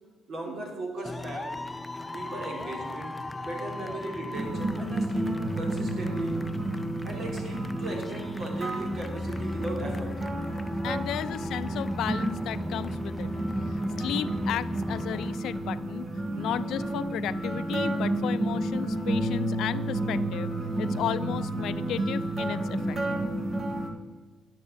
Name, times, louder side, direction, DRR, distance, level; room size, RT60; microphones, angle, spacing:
voice 1, 0.3-1.6 2.1-6.5 7.0-10.3, right 2 dB, 60° right, 1 dB, 3.5 m, -38 dB
sound 1, 1.0-15.3, left 2 dB, 15° left, 0.4 m, -39 dB
sound 2, 4.3-23.9, right 1 dB, 40° right, 1.7 m, -31 dB
voice 2, 10.8-13.3 14.0-16.1 16.3-20.5 20.8-23.0, left 10 dB, 80° left, 15 dB, 0.5 m, -34 dB
9.8 x 6.8 x 8.0 m, 1.3 s
cardioid pair, 90°, 0 cm